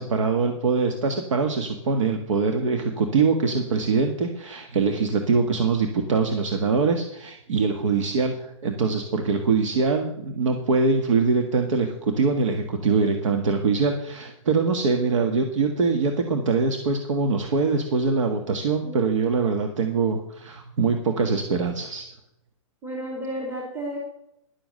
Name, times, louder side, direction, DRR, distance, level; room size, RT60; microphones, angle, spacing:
voice 1, 0.0-22.1, right 4 dB, 70° right, 5 dB, 1.5 m, -23 dB
voice 2, 22.8-24.0, right 1 dB, 15° right, -2 dB, 2.8 m, -32 dB
11.0 x 7.2 x 6.6 m, 0.78 s
hypercardioid pair, 140°, 17 cm